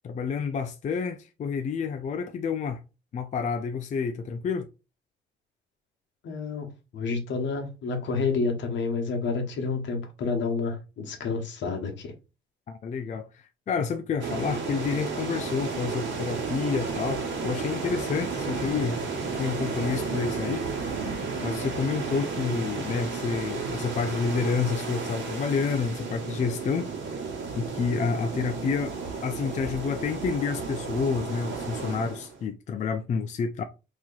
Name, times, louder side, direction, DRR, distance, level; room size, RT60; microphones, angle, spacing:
voice 1, 0.0-2.8 3.1-4.7 12.7-19.1 19.4-20.7 21.4-26.9 27.6-29.0 29.2-33.6, left 5 dB, 35° left, 0.4 m, -29 dB
voice 2, 6.2-6.7 6.9-12.1, left 4 dB, 70° left, 1.1 m, -29 dB
sound 1, 14.2-32.4, right 4 dB, 70° right, 1.4 m, -33 dB
3.0 x 2.8 x 3.8 m
cardioid pair, 90°, 20 cm